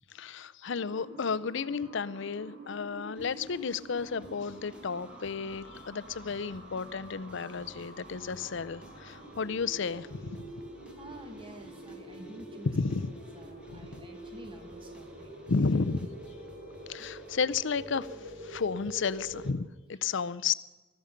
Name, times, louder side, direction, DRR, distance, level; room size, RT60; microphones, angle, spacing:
voice 1, 0.1-10.4 12.6-13.1 13.7-14.0 15.5-16.1 16.9-20.5, left 5 dB, 65° left, 0.6 m, -32 dB
sound 1, 0.7-19.5, right 1 dB, 80° right, 4.1 m, -47 dB
sound 2, 3.1-19.5, equal, 5° right, 1.7 m, -56 dB
voice 2, 11.0-13.1 13.3-15.3, equal, 25° right, 1.9 m, -50 dB
20.0 x 13.5 x 5.2 m
head